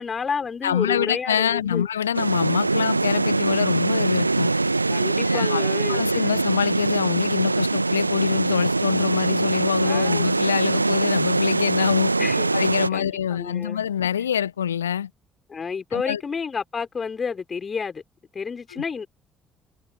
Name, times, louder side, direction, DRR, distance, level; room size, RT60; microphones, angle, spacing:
voice 1, 0.0-1.9 4.9-6.1 9.8-10.3 12.2-12.6 12.9-13.8 15.5-18.0 18.3-19.1, left 5 dB, 35° left, 5.4 m, -30 dB
voice 2, 0.6-4.5 5.2-12.1 12.5-15.1 15.9-16.2 18.7-18.8, left 9 dB, 80° left, 1.5 m, -25 dB
sound 1, 2.1-12.9, right 3 dB, 85° right, 1.5 m, -23 dB
figure-of-eight pair, 50°, 0 cm